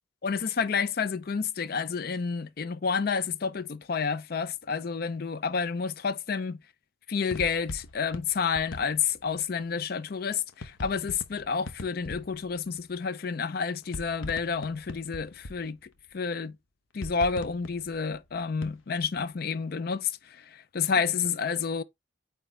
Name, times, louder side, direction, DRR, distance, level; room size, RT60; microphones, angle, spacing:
voice 1, 0.2-6.6 7.1-15.8 16.1-16.6 16.9-21.8, left 5 dB, 50° left, 0.4 m, -30 dB
sound 1, 7.3-9.4 10.1-12.8 13.6-16.1 16.9-19.2, left 2 dB, 80° left, 0.9 m, -41 dB
9.0 x 3.5 x 3.2 m
head